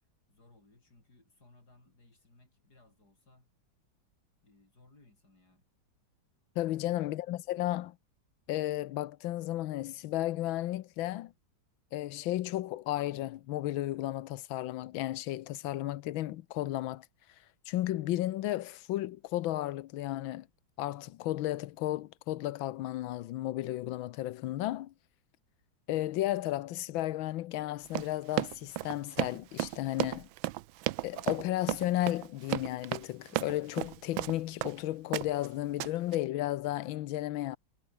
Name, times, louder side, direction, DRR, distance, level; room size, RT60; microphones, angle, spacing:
voice 1, 0.3-3.5 4.4-5.7, left 2 dB, 50° left, 6.2 m, -63 dB
voice 2, 6.6-8.0 8.5-11.3 11.9-17.0 17.7-20.5 20.8-24.9 25.9-30.3 31.0-37.6, left 15 dB, 80° left, 1.5 m, -33 dB
Run, 27.9-34.8 35.1-35.5 35.8-36.2, right 16 dB, 90° right, 1.5 m, -34 dB
omnidirectional pair, 2.1 m